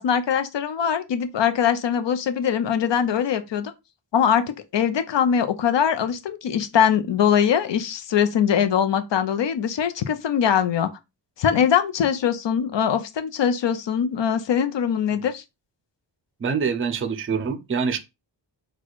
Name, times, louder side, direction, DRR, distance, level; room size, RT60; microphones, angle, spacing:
voice 1, 0.0-3.7 4.1-10.9 11.4-15.4, left 8 dB, 70° left, 0.7 m, -22 dB
voice 2, 16.4-18.0, right 6 dB, 30° right, 0.5 m, -25 dB
4.1 x 2.3 x 4.5 m
wide cardioid pair, 170°, 45 cm